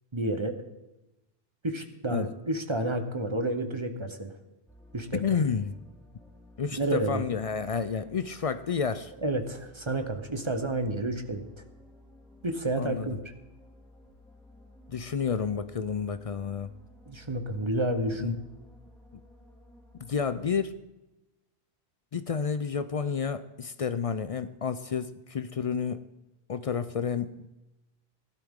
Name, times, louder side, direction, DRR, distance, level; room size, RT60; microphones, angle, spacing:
voice 1, 0.1-0.6 1.6-4.4 4.9-5.2 6.7-7.2 9.2-11.5 12.4-13.2 17.1-18.3, right 1 dB, 30° right, 7 dB, 0.9 m, -30 dB
sound 1, 4.7-20.6, left 1 dB, ahead, 2.1 m, -55 dB
voice 2, 5.1-5.8 6.6-9.1 12.8-13.1 14.9-16.7 18.2-18.4 20.0-20.8 22.1-26.0 26.5-27.5, left 6 dB, 55° left, 12 dB, 0.4 m, -30 dB
16.5 x 12.0 x 3.7 m, 1.0 s
omnidirectional pair, 1.1 m